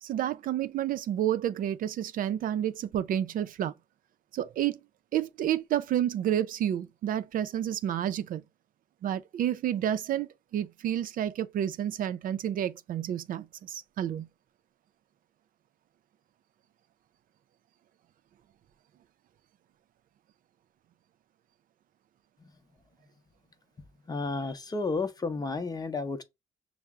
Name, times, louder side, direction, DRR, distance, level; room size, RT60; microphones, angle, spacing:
voice 1, 0.0-3.7 4.3-4.8 5.1-8.4 9.0-14.3, right 10 dB, 70° right, 0.4 m, -30 dB
voice 2, 24.0-26.2, left 3 dB, 25° left, 0.6 m, -32 dB
5.5 x 2.0 x 3.5 m
cardioid pair, 95°, 15 cm